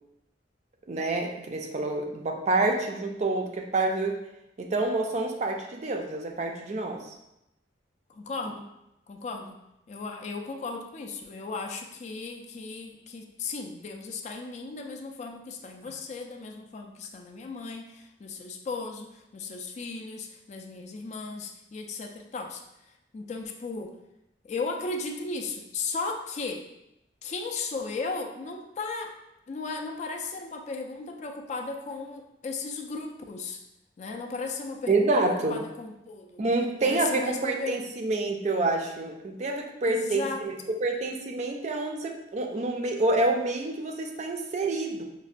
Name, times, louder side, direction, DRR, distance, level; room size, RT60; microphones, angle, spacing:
voice 1, 0.9-4.2 4.6-7.1 34.9-35.6 36.4-40.5 40.8-45.0, right 2 dB, 40° right, 3 dB, 0.4 m, -27 dB
voice 2, 8.1-8.7 9.1-9.6 9.9-22.6 23.1-23.9 24.4-26.6 27.2-29.1 29.5-33.6 34.0-36.4 36.8-37.8 39.8-40.7, left 4 dB, 40° left, 3 dB, 0.3 m, -36 dB
5.2 x 2.1 x 2.4 m, 0.88 s
head